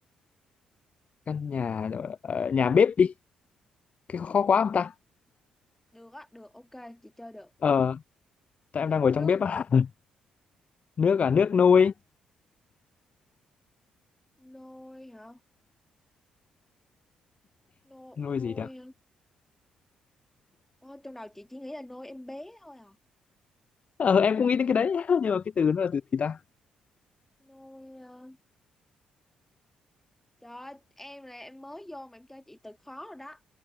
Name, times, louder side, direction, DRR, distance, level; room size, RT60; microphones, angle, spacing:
voice 1, 1.3-3.1 4.1-4.9 7.6-8.0 8.7-9.9 11.0-11.9 18.2-18.7 24.0-26.4, left 6 dB, 40° left, 0.4 m, -24 dB
voice 2, 5.9-7.5 8.9-9.4 14.4-15.4 17.9-18.9 20.8-23.0 27.4-28.4 30.4-33.4, left 1 dB, 10° left, 1.7 m, -45 dB
hypercardioid pair, 45°, 3 cm